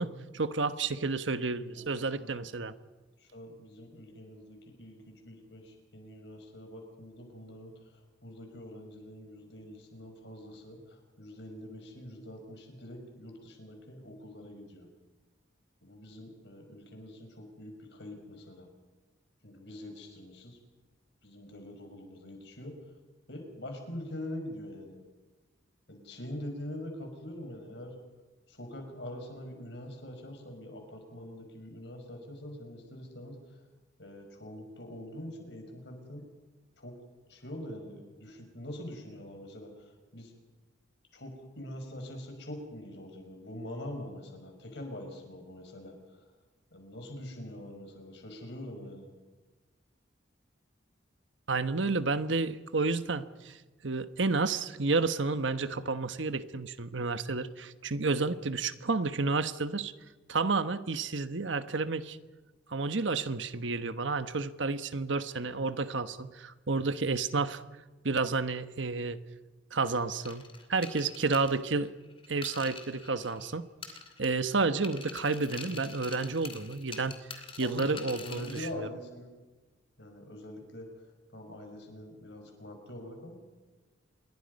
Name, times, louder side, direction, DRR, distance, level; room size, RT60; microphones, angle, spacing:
voice 1, 0.0-2.7 51.5-53.6 53.8-59.9 60.3-62.2 62.7-67.6 68.0-69.2 69.7-71.9 72.3-73.7 74.2-77.2 77.6-78.9, right 3 dB, 75° right, 11 dB, 1.2 m, -31 dB
voice 2, 2.2-2.5 3.2-7.7 8.2-14.9 15.8-18.7 19.4-20.6 21.2-22.8 23.3-25.0 25.9-27.9 28.5-33.4 34.0-36.2 36.8-36.9 37.3-40.3 41.1-45.9 46.7-49.1 77.6-79.3 80.0-80.9 81.3-83.4, left 1 dB, 60° left, 4 dB, 5.7 m, -44 dB
sound 1, 70.3-73.5 73.8-74.5 74.8-78.7, left 5 dB, 30° left, 2.7 m, -45 dB
27.5 x 22.5 x 5.4 m, 1.2 s
head